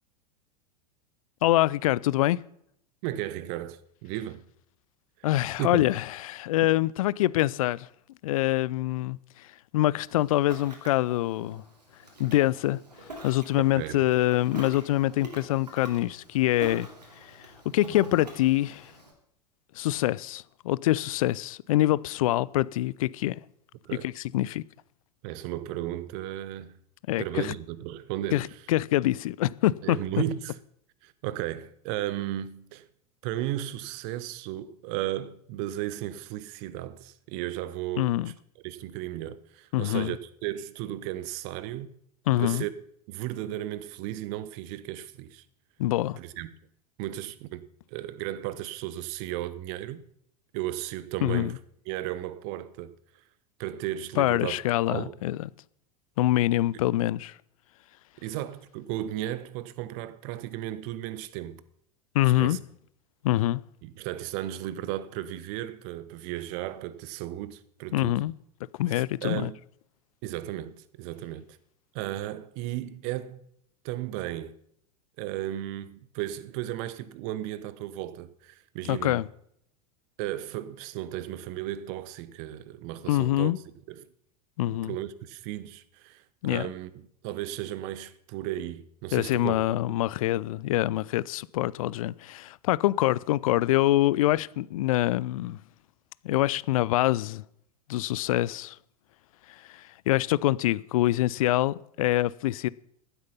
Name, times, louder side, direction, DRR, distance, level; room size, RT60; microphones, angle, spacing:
voice 1, 1.4-2.4 5.2-7.9 8.2-9.5 9.7-11.6 12.2-12.8 13.2-16.9 17.2-17.3 17.7-18.9 19.8-23.4 24.0-24.6 27.1-27.5 28.3-30.0 38.0-38.3 39.7-40.1 42.3-42.6 45.8-46.2 51.2-51.5 54.2-55.4 56.2-57.3 62.1-62.6 63.2-63.6 67.9-68.3 68.8-69.5 78.9-79.3 83.1-83.6 84.6-84.9 86.4-86.7 89.1-95.6 96.2-97.4 97.9-98.8 99.5-102.7, left 15 dB, 60° left, 0.5 m, -25 dB
voice 2, 3.0-4.4 5.2-5.3 5.6-5.8 13.5-14.0 23.8-24.1 25.2-26.8 27.2-28.5 29.8-30.6 31.0-32.9 33.2-38.3 38.6-41.9 42.4-42.7 43.1-45.4 46.2-46.5 47.0-47.7 47.9-50.0 50.5-51.6 51.9-52.9 53.6-54.6 54.9-55.1 56.7-56.8 58.2-61.6 62.4-62.6 63.8-68.1 68.9-69.6 70.2-71.6 71.9-73.4 73.8-74.6 75.2-79.2 80.2-83.5 83.9-84.1 84.7-89.5, right 13 dB, 45° right, 0.9 m, -35 dB
Ocean, 10.1-19.1, right 1 dB, 80° right, 3.0 m, -45 dB
14.5 x 8.1 x 5.6 m
figure-of-eight pair, 85°, 21 cm